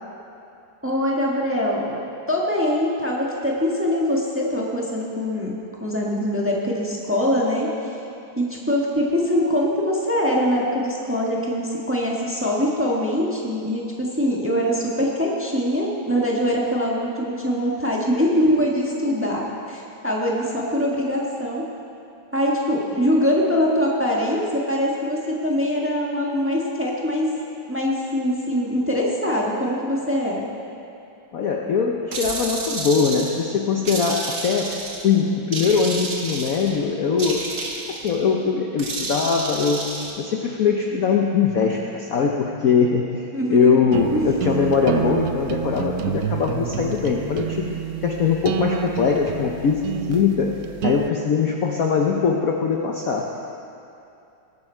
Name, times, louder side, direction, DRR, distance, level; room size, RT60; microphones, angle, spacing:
voice 1, 0.8-5.5 5.8-8.0 8.3-21.6 22.3-27.3 27.7-30.4 43.3-43.9 44.1-44.3, equal, 5° right, -3 dB, 1.2 m, -23 dB
voice 2, 31.3-34.7 35.0-37.4 37.9-39.8 40.2-43.2 43.5-49.8 50.1-50.5 50.8-53.3, left 6 dB, 60° left, 0 dB, 1.0 m, -21 dB
sound 1, 32.1-33.4 33.9-35.1 35.5-36.8 37.2-38.2 38.8-40.1, right 3 dB, 45° right, 1.5 m, -30 dB
sound 2, 43.9-51.1, right 10 dB, 85° right, 0.8 m, -29 dB
19.5 x 9.0 x 4.5 m, 2.7 s
omnidirectional pair, 2.2 m